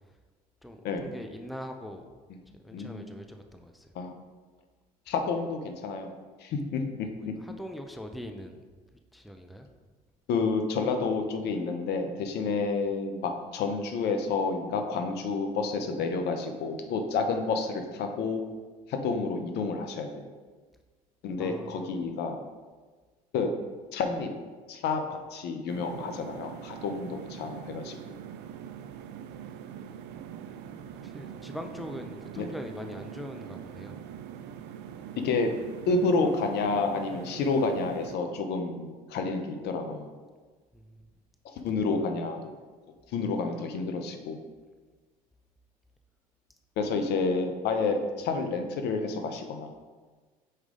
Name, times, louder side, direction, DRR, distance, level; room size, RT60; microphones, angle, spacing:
voice 1, 0.6-2.0 2.6-3.9 7.4-8.6 9.1-9.7 21.4-21.9 31.0-34.0 40.7-41.0, equal, ahead, 5 dB, 0.6 m, -42 dB
voice 2, 2.7-3.0 3.9-4.1 5.1-6.1 6.4-6.8 7.3-7.4 10.3-18.4 18.9-20.2 21.2-22.4 23.3-23.5 23.9-24.3 24.7-28.0 32.4-32.5 35.2-35.5 35.9-40.1 41.4-42.4 43.1-44.4 46.8-49.7, left 4 dB, 60° left, 5 dB, 0.8 m, -29 dB
sound 1, 25.7-38.2, right 9 dB, 65° right, 0.5 m, -43 dB
5.5 x 4.7 x 3.8 m, 1.4 s
hypercardioid pair, 65°, 19 cm